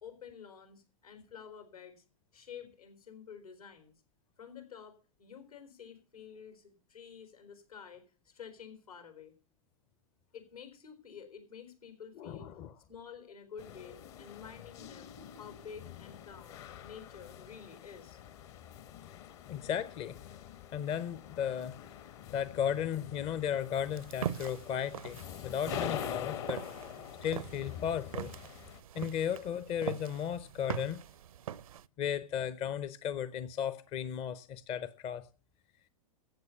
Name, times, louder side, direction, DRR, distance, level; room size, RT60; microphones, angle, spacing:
voice 1, 0.0-2.0 2.3-3.9 4.4-9.3 10.3-12.5 12.9-18.2, left 7 dB, 75° left, 3.9 m, -50 dB
voice 2, 12.2-12.7 19.5-20.2 20.7-22.0 22.3-26.6 27.2-28.3 28.9-31.0 32.0-35.2, left 9 dB, 30° left, 0.7 m, -35 dB
sound 1, 13.6-28.8, left 9 dB, 50° left, 1.4 m, -45 dB
sound 2, 23.9-31.8, right 9 dB, 70° right, 0.6 m, -42 dB
14.5 x 8.1 x 6.9 m
figure-of-eight pair, 105°, 19 cm